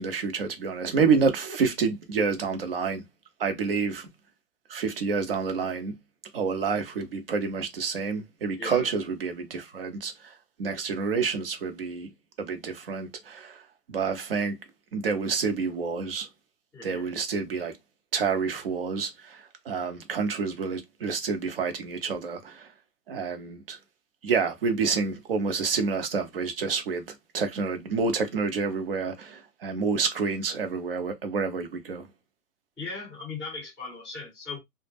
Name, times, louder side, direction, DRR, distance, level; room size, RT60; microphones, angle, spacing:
voice 1, 0.0-3.0 3.4-4.1 4.7-5.9 6.3-10.1 10.6-12.1 12.4-13.6 13.9-14.6 14.9-16.3 16.8-17.7 18.1-22.7 23.1-23.8 24.2-27.1 27.3-32.0, right 5 dB, 40° right, 0.5 m, -28 dB
voice 2, 8.6-8.9 16.7-17.1 32.8-34.6, left 4 dB, ahead, 0.6 m, -38 dB
2.1 x 2.0 x 3.2 m
hypercardioid pair, 145°, 49 cm